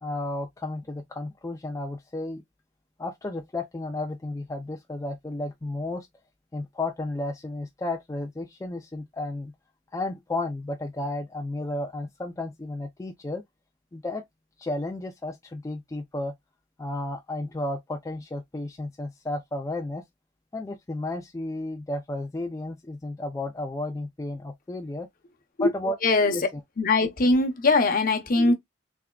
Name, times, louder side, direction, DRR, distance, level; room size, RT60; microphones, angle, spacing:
voice 1, 0.0-2.4 3.0-6.1 6.5-9.5 9.9-13.4 13.9-14.3 14.6-16.4 16.8-20.0 20.5-25.1 25.6-26.0 26.3-26.6, left 2 dB, 15° left, 0.4 m, -33 dB
voice 2, 26.0-26.4 26.8-28.5, left 3 dB, 50° left, 0.8 m, -21 dB
3.5 x 3.3 x 2.2 m
head